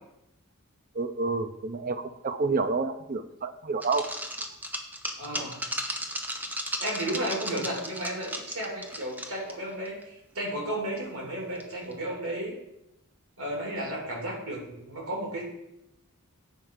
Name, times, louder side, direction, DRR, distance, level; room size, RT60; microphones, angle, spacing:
voice 1, 0.9-4.1 5.4-5.5, right 3 dB, 40° right, 9 dB, 0.6 m, -29 dB
sound 1, 3.8-9.6 9.9-10.0 10.4-10.5 11.6-11.9, equal, 10° right, 0.8 m, -35 dB
voice 2, 5.2-5.6 6.8-12.5 13.4-15.4, right 1 dB, 70° right, -2 dB, 3.2 m, -33 dB
8.9 x 4.5 x 6.5 m, 0.86 s
head